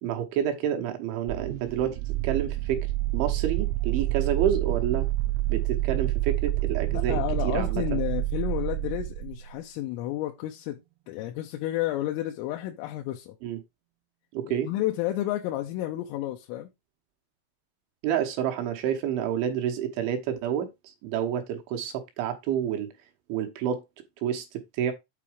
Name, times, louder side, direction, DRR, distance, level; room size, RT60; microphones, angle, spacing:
voice 1, 0.0-2.0 2.2-2.9 3.1-5.1 5.5-8.0 13.4-13.6 14.3-14.7 18.0-22.9 23.3-23.8 24.2-24.9, right 9 dB, 75° right, 3.2 m, -29 dB
sound 1, 1.3-9.5, right 16 dB, 90° right, 3.3 m, -28 dB
voice 2, 6.9-10.8 11.1-13.4 14.5-16.7, left 14 dB, 80° left, 3.3 m, -31 dB
8.7 x 4.1 x 4.9 m
omnidirectional pair, 6.0 m